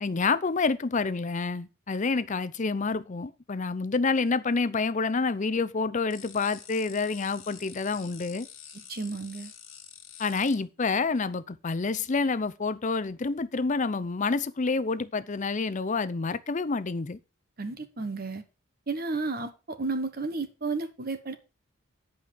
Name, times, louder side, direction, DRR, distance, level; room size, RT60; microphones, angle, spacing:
voice 1, 0.0-8.5 10.2-17.2, left 4 dB, 40° left, 0.6 m, -28 dB
sound 1, 6.1-10.5, left 8 dB, 80° left, 2.2 m, -47 dB
voice 2, 8.9-9.5 17.6-18.4 18.9-21.3, right 3 dB, 50° right, 1.2 m, -32 dB
9.3 x 5.5 x 6.4 m
head